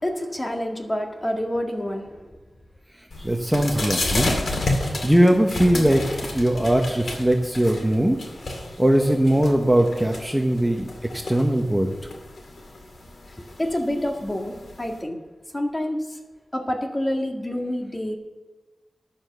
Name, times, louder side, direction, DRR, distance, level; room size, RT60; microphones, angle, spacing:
voice 1, 0.0-2.1 13.6-14.5 14.8-15.2 15.5-16.0 16.5-18.2, left 1 dB, 25° left, 2 dB, 1.9 m, -27 dB
sound 1, 3.1-15.0, left 2 dB, 70° left, 2.2 m, -31 dB
voice 2, 3.2-4.3 5.0-8.2 8.5-12.1, right 1 dB, 10° right, 3 dB, 1.0 m, -20 dB
11.0 x 7.2 x 6.7 m, 1.2 s
wide cardioid pair, 75°, 0 cm